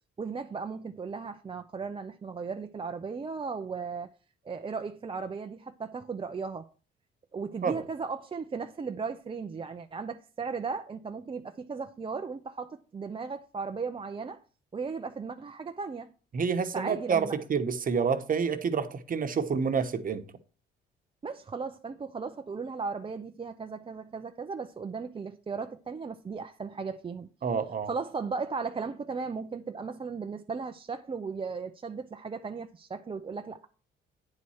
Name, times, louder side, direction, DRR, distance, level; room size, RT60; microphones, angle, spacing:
voice 1, 0.2-4.1 4.4-6.7 7.3-14.4 14.7-16.1 16.7-17.4 21.2-27.3 27.9-33.7, right 5 dB, 25° right, 0.5 m, -36 dB
voice 2, 16.3-20.2 27.4-27.9, right 6 dB, 45° right, 1.1 m, -28 dB
9.6 x 4.2 x 6.3 m
cardioid pair, 90°, 20 cm